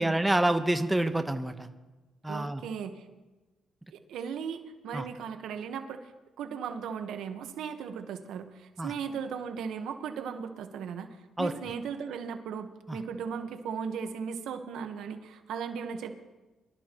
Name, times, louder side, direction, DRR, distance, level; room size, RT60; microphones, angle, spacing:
voice 1, 0.0-1.7 2.2-2.6 4.9-5.0 8.8-8.9 11.4-11.5 12.9-13.0, right 1 dB, 10° right, 7 dB, 1.0 m, -27 dB
voice 2, 2.3-3.0 3.9-6.1 6.4-16.2, right 6 dB, 80° right, 7 dB, 1.2 m, -37 dB
24.5 x 13.0 x 3.0 m, 1.1 s
cardioid pair, 90°, 0 cm